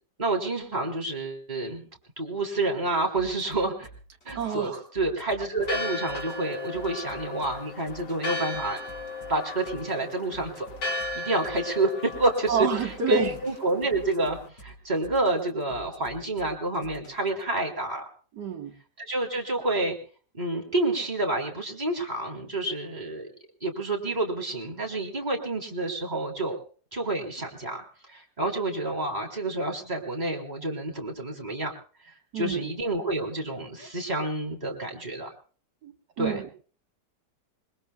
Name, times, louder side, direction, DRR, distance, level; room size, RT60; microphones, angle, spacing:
voice 1, 0.2-1.9 2.2-3.9 4.3-8.8 9.3-10.7 11.1-18.1 19.0-20.0 20.3-23.3 23.6-26.6 26.9-27.8 28.1-31.7 32.3-35.3 36.2-36.4, right 2 dB, 25° right, 1 dB, 3.6 m, -29 dB
sound 1, 3.2-17.4, right 2 dB, 40° left, 4.4 m, -49 dB
voice 2, 4.3-4.8 12.5-13.3 18.3-18.7 32.3-32.7 35.8-36.5, right 5 dB, 80° right, 3 dB, 2.1 m, -28 dB
Church bell, 5.6-14.5, left 2 dB, 90° left, 2.6 m, -36 dB
27.5 x 21.0 x 2.3 m, 0.41 s
omnidirectional pair, 1.8 m